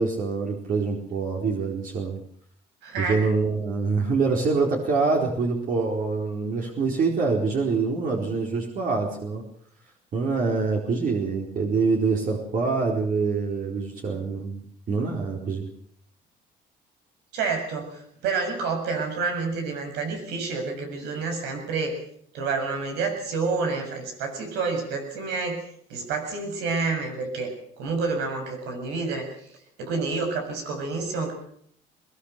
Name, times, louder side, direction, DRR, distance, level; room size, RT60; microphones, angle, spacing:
voice 1, 0.0-2.2 3.0-9.4 10.1-14.6 14.9-15.7, right 4 dB, 55° right, 0 dB, 4.4 m, -25 dB
voice 2, 2.8-3.2 17.3-22.0 22.3-25.6 25.9-27.5 27.8-29.5 29.8-31.3, right 4 dB, 85° right, 5 dB, 7.0 m, -29 dB
21.5 x 20.5 x 6.8 m, 0.64 s
cardioid pair, 110°, 17 cm